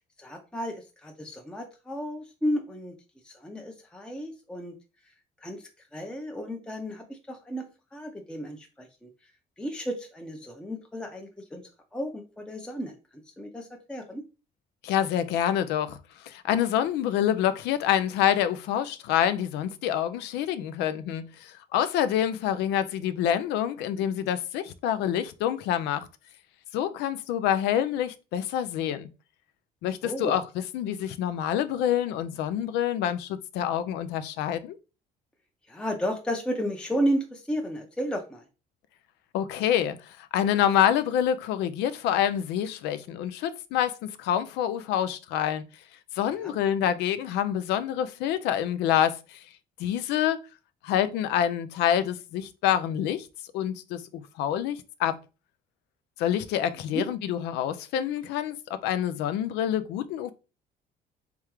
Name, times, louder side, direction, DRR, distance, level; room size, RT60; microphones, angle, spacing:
voice 1, 0.2-2.9 3.2-4.7 5.4-5.6 5.9-7.7 7.9-9.1 9.6-11.6 11.9-12.9 13.4-14.2 30.0-30.3 35.7-38.4 46.4-46.5 56.9-57.1, equal, 5° left, 0.6 m, -33 dB
voice 2, 14.8-16.0 16.2-26.1 26.7-29.1 29.8-30.4 30.7-34.8 39.3-45.6 46.1-49.4 49.8-50.4 50.8-53.3 53.5-55.2 56.2-60.3, left 10 dB, 90° left, 0.5 m, -27 dB
3.5 x 3.4 x 3.0 m
cardioid pair, 110°, 17 cm